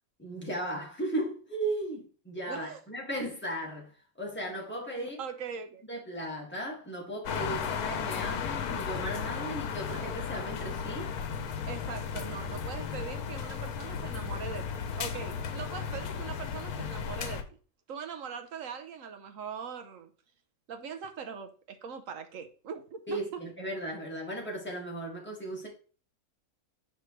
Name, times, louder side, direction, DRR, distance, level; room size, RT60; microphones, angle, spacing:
voice 1, 0.2-3.9 4.2-5.2 5.9-11.1 23.1-25.7, right 1 dB, 5° left, 1.8 m, -36 dB
voice 2, 2.5-2.8 5.0-5.8 11.7-14.6 15.0-17.4 17.9-20.1 20.7-23.4, right 6 dB, 65° right, 1.1 m, -41 dB
sound 1, 7.3-17.4, left 7 dB, 85° left, 1.2 m, -35 dB
6.8 x 4.9 x 3.1 m
omnidirectional pair, 1.6 m